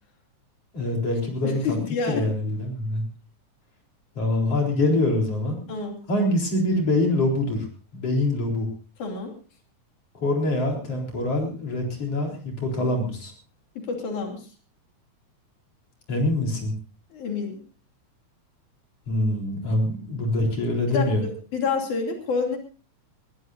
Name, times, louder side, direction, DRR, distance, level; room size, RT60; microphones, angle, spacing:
voice 1, 0.7-1.8 2.1-3.0 4.2-5.6 6.1-7.6 7.9-8.7 10.1-13.3 16.1-16.7 19.1-21.2, left 1 dB, 55° left, 0 dB, 5.1 m, -24 dB
voice 2, 1.4-2.3 5.7-6.0 9.0-9.3 13.8-14.5 17.1-17.6 20.9-22.6, left 5 dB, 85° left, 2 dB, 4.3 m, -28 dB
20.5 x 19.5 x 2.7 m, 0.37 s
omnidirectional pair, 3.4 m